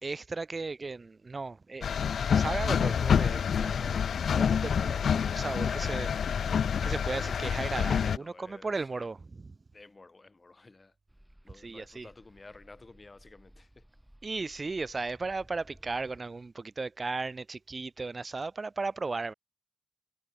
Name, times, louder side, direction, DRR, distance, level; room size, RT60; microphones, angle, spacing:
voice 1, 0.0-2.0 2.3-6.1 6.8-9.2 9.4-9.5 11.6-12.1 14.2-19.3, right 3 dB, 30° right, 0.4 m, -36 dB
sound 1, 1.8-8.2, left 7 dB, 70° left, 0.3 m, -27 dB
voice 2, 8.2-9.1 9.7-10.9 11.4-13.9, left 3 dB, 25° left, 2.7 m, -53 dB
sound 2, 11.1-16.2, equal, 5° right, 3.4 m, -59 dB
wide cardioid pair, 170°, 0 cm